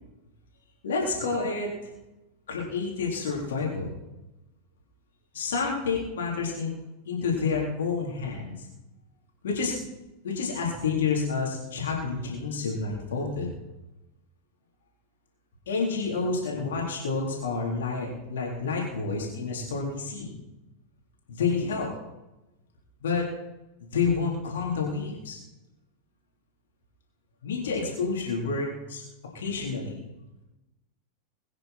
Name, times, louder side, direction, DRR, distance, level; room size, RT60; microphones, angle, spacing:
voice 1, 0.8-1.9 2.5-3.9 5.3-6.7 7.1-8.7 9.4-9.8 10.2-13.5 15.7-20.4 21.3-21.9 23.0-23.2 23.8-25.4 27.4-29.0 29.3-30.0, left 4 dB, 60° left, -2 dB, 3.8 m, -29 dB
22.0 x 9.5 x 4.4 m, 0.99 s
figure-of-eight pair, 90°, 0 cm